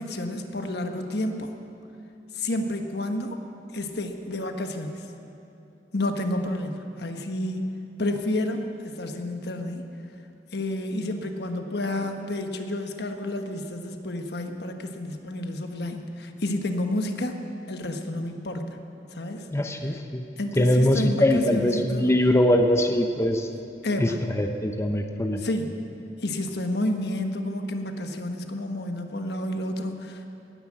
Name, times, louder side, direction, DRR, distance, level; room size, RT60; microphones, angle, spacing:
voice 1, 0.0-1.5 2.3-3.4 3.7-5.1 5.9-7.6 8.0-9.9 10.5-17.4 17.7-18.8 19.1-19.5 19.8-19.9 20.4-22.1 23.8-24.2 25.4-25.8 26.2-30.3, left 1 dB, 65° left, 5 dB, 1.3 m, -30 dB
voice 2, 19.5-20.2 20.6-23.5 24.0-24.1 24.4-25.5, left 1 dB, 15° left, 5 dB, 0.7 m, -22 dB
19.0 x 9.9 x 7.6 m, 2.9 s
head